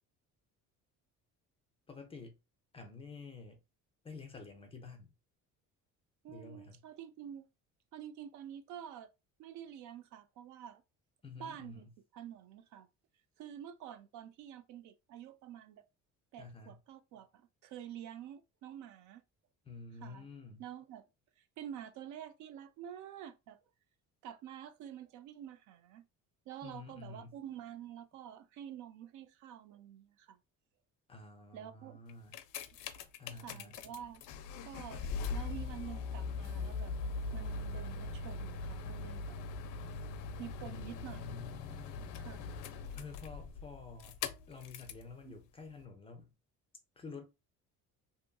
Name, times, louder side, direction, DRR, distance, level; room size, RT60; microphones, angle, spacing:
voice 1, 1.9-2.4 2.7-3.6 4.0-5.1 6.3-6.8 11.2-11.9 16.4-16.8 19.7-20.6 26.6-27.4 31.1-32.4 33.2-33.8 40.6-42.2 43.0-44.2 44.5-46.3 47.0-47.2, left 4 dB, 20° left, 0.4 m, -49 dB
voice 2, 6.2-7.5 7.9-9.1 9.4-10.8 11.4-11.8 12.1-12.9 13.4-15.8 16.3-19.2 20.0-20.3 20.6-21.0 21.6-23.6 24.2-26.0 26.5-30.4 31.5-32.0 33.4-34.2 34.6-36.9 37.3-39.4 40.4-41.5 42.2-42.6 45.3-45.4, right 10 dB, 65° right, 0.5 m, -48 dB
sound 1, 32.1-45.1 45.8-45.9, left 4 dB, 80° left, 0.5 m, -41 dB
2.7 x 2.5 x 2.2 m
cardioid pair, 150°, 31 cm